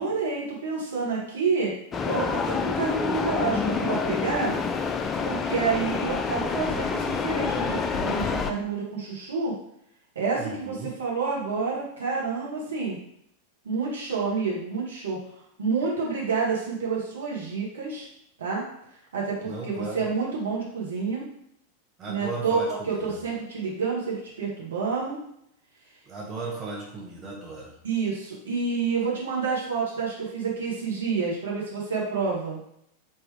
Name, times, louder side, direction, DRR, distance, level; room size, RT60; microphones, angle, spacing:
voice 1, 0.0-1.7 2.1-4.5 5.2-9.5 10.1-13.0 13.6-15.2 15.6-18.1 18.4-18.6 19.1-21.2 22.1-22.6 22.9-25.2 27.8-32.6, right 5 dB, 65° right, -3 dB, 1.2 m, -28 dB
sound 1, 1.9-8.5, left 5 dB, 20° left, 0.3 m, -27 dB
voice 2, 2.5-2.8 10.4-11.0 19.4-20.1 22.0-23.2 26.0-27.7, right 3 dB, 25° right, -3 dB, 0.9 m, -37 dB
3.7 x 2.9 x 3.3 m, 0.74 s
figure-of-eight pair, 90°, 0 cm